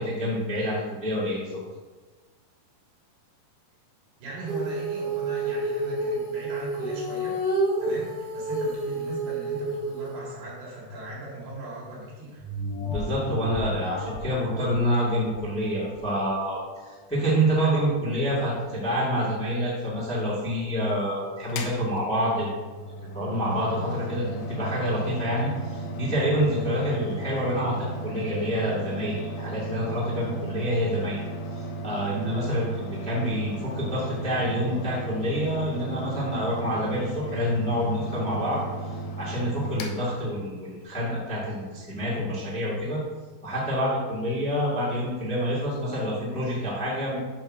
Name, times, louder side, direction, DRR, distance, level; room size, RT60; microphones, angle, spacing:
voice 1, 0.0-1.6 12.8-22.5 23.1-31.2 31.8-38.6 39.2-43.0 43.4-47.2, equal, 5° left, -7 dB, 0.9 m, -27 dB
voice 2, 4.2-7.4 7.8-12.4, right 2 dB, 75° right, -5 dB, 4.4 m, -39 dB
Female singing, 4.5-10.2, right 2 dB, 35° right, 0.7 m, -29 dB
sound 1, 12.4-17.3 17.8-17.9, left 1 dB, 50° left, 2.1 m, -36 dB
Mechanical fan, 21.5-40.8, right 2 dB, 85° left, 1.9 m, -35 dB
8.6 x 3.1 x 6.2 m, 1.3 s
omnidirectional pair, 4.7 m